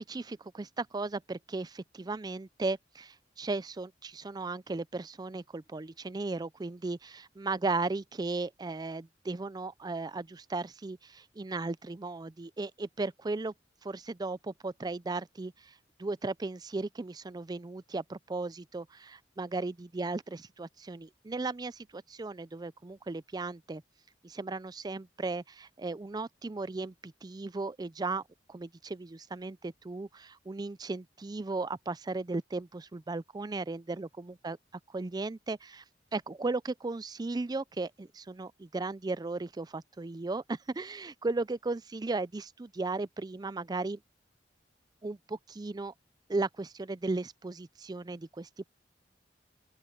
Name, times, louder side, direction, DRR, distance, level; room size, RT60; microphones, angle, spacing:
voice 1, 0.1-13.5 13.8-15.7 16.0-23.8 24.2-28.2 28.5-34.6 34.9-35.8 36.1-44.0 45.0-45.9 46.3-48.6, right 3 dB, 20° right, 0.4 m, -36 dB
open air
head